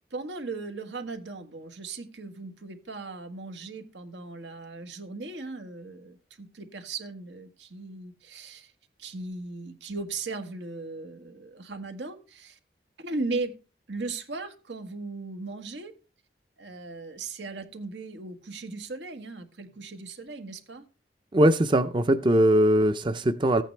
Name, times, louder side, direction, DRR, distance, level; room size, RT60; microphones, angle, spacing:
voice 1, 0.1-8.7 9.0-12.6 13.0-13.5 13.9-15.9 16.6-20.8, right 3 dB, 90° right, 1.6 m, -37 dB
voice 2, 21.3-23.6, right 1 dB, 30° right, 0.5 m, -21 dB
14.5 x 9.0 x 3.3 m
head